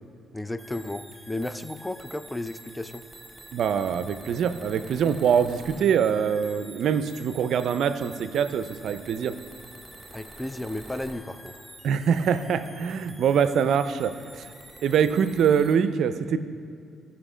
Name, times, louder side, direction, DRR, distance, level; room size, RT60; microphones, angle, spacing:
voice 1, 0.3-3.0 10.1-11.5, left 1 dB, 10° left, 12 dB, 0.4 m, -33 dB
sound 1, 0.6-15.8, right 1 dB, 5° right, 1.7 m, -47 dB
voice 2, 3.5-9.4 11.8-14.5 14.8-16.4, right 7 dB, 70° right, 12 dB, 0.5 m, -24 dB
16.0 x 5.7 x 5.0 m, 2.4 s
cardioid pair, 90°, 0 cm